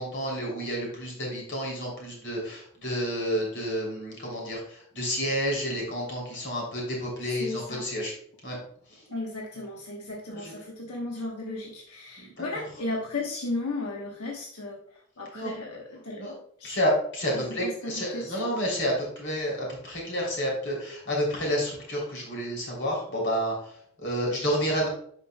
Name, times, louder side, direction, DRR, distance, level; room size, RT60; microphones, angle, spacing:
voice 1, 0.0-8.1 8.4-8.6 8.9-9.0 10.3-10.5 12.2-12.4 15.3-15.6 16.2-16.3 16.6-24.9, equal, 50° left, -2 dB, 3.1 m, -30 dB
voice 2, 7.4-7.8 9.1-16.7 17.6-18.5, left 2 dB, 85° left, -1 dB, 1.1 m, -35 dB
11.0 x 5.2 x 2.2 m, 0.62 s
head